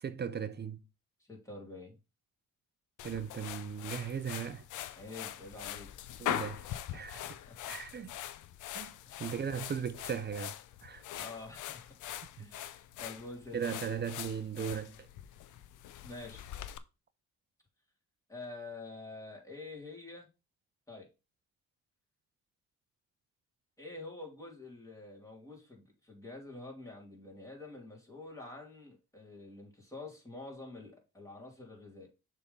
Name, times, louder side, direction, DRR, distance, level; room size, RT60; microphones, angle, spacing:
voice 1, 0.0-0.8 3.0-4.6 6.2-6.6 6.9-7.2 7.7-8.1 8.7-8.9 9.2-11.0 12.4-12.5 13.5-14.9, right 7 dB, 35° right, 0.6 m, -37 dB
voice 2, 1.2-2.0 4.9-5.9 6.9-7.1 7.4-7.6 7.9-8.1 9.0-9.2 11.1-11.9 12.4-13.9 16.0-16.5 18.3-20.3 20.9-21.1 23.8-32.1, left 2 dB, 10° left, 3.3 m, -47 dB
sound 1, 3.0-16.8, left 12 dB, 80° left, 0.6 m, -42 dB
6.7 x 3.7 x 5.5 m
cardioid pair, 90°, 30 cm